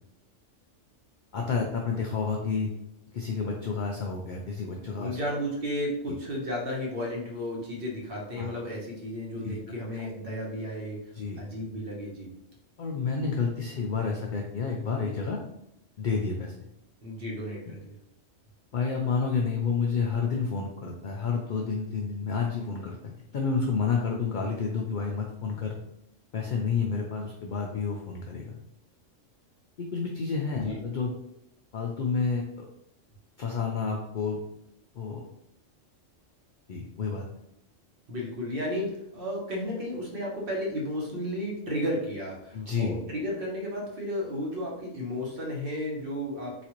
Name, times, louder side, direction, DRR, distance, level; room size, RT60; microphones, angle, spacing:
voice 1, 1.3-2.7 3.1-5.2 6.1-6.2 8.4-8.5 9.4-9.5 9.9-10.1 11.1-11.4 12.8-15.4 16.0-16.5 17.7-17.8 18.7-23.0 23.3-25.8 26.3-28.5 29.9-31.1 31.7-32.7 33.4-34.4 34.9-35.2 36.7-37.3 42.5-43.0, left 5 dB, 65° left, 0 dB, 0.4 m, -30 dB
voice 2, 5.0-11.0 11.4-12.3 17.0-17.9 30.6-30.8 38.1-46.6, equal, 50° right, -2 dB, 1.0 m, -33 dB
4.0 x 2.4 x 2.9 m, 0.81 s
omnidirectional pair, 1.3 m